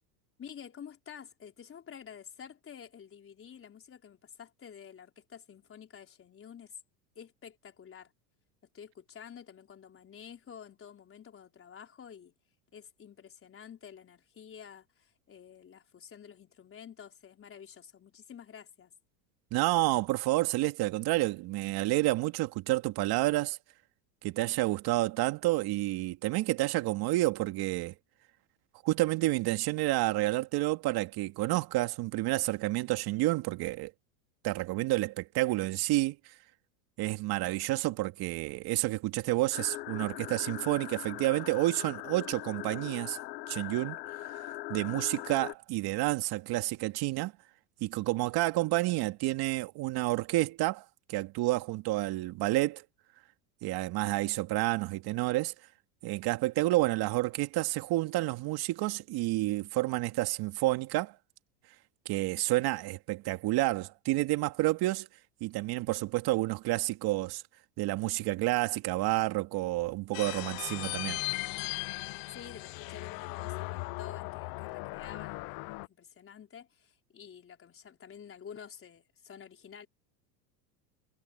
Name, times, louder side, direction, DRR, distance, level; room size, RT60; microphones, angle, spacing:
voice 1, 0.4-6.8 7.1-8.1 8.7-12.3 12.7-19.0 72.3-75.5 75.9-79.9, left 8 dB, 25° left, 4.7 m, -50 dB
voice 2, 19.5-23.6 24.2-27.9 28.8-33.9 34.4-36.2 37.0-43.2 43.5-44.0 44.7-47.3 47.8-52.8 53.6-55.5 56.0-61.2 62.1-65.1 65.4-67.4 67.8-71.2, right 18 dB, 50° right, 2.6 m, -29 dB
sound 1, 39.5-45.5, left 17 dB, 75° left, 3.4 m, -41 dB
sound 2, 70.1-75.9, left 25 dB, 45° left, 0.8 m, -38 dB
supercardioid pair, 120°, 49 cm